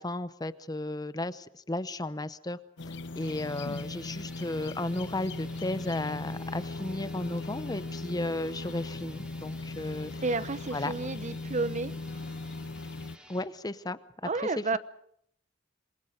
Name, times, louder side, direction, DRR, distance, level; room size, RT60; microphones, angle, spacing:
voice 1, 0.0-2.6 3.2-10.1 10.7-10.9 13.3-14.0 14.6-14.8, left 2 dB, 20° left, 14 dB, 0.8 m, -34 dB
sound 1, 2.8-13.2, left 2 dB, 65° left, 0.9 m, -38 dB
sound 2, 3.1-13.5, equal, 5° right, 2.6 m, -53 dB
voice 2, 10.2-12.0 14.2-14.8, right 3 dB, 40° right, 14 dB, 0.9 m, -31 dB
27.5 x 21.5 x 5.1 m, 0.68 s
head